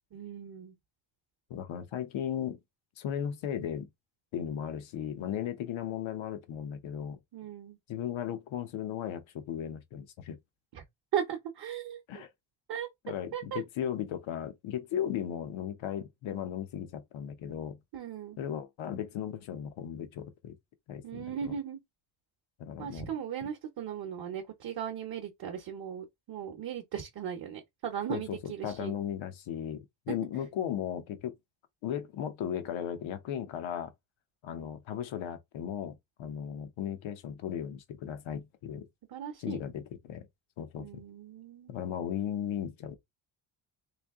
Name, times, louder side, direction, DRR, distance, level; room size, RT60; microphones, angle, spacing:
voice 1, 0.1-0.8 7.3-7.8 10.7-10.8 11.1-12.2 12.7-12.9 13.3-13.6 17.9-18.4 21.0-21.8 22.8-28.9 30.1-30.2 39.1-39.6 40.8-41.7, right 9 dB, 50° right, 0.8 m, -37 dB
voice 2, 1.5-2.6 3.0-3.9 4.3-7.2 7.9-10.4 12.1-12.3 13.0-17.8 18.4-20.6 20.9-21.0 22.6-23.1 28.1-31.3 31.8-33.9 34.4-38.9 39.4-40.3 40.6-41.0 41.7-43.0, left 9 dB, 75° left, 0.9 m, -36 dB
3.2 x 2.7 x 3.5 m
cardioid pair, 150°, 47 cm